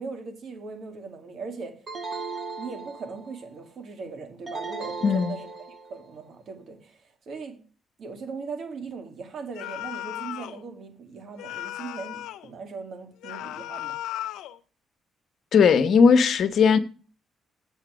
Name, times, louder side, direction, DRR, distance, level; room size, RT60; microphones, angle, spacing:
voice 1, 0.0-1.8 2.6-5.5 5.9-7.6 8.0-14.0, right 4 dB, 60° right, 2.2 m, -39 dB
sound 1, 1.9-3.4 4.5-6.0, right 4 dB, 40° right, 2.0 m, -36 dB
voice 2, 5.0-5.3 15.5-16.8, left 6 dB, 60° left, 1.0 m, -18 dB
sound 2, 9.5-10.6 11.4-12.5 13.2-14.6, left 14 dB, 90° left, 0.6 m, -36 dB
7.6 x 7.4 x 6.2 m
cardioid pair, 90°, 0 cm